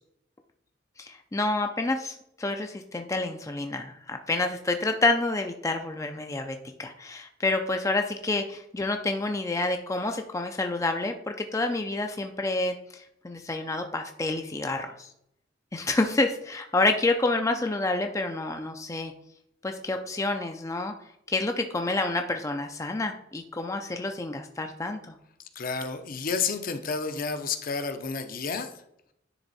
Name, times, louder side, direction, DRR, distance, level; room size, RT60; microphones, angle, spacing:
voice 1, 1.0-15.1 15.7-19.1 19.6-20.9 21.3-25.0, left 2 dB, 15° left, 5 dB, 0.4 m, -28 dB
voice 2, 25.6-28.7, left 5 dB, 50° left, 7 dB, 0.7 m, -30 dB
10.0 x 3.6 x 4.0 m, 0.76 s
head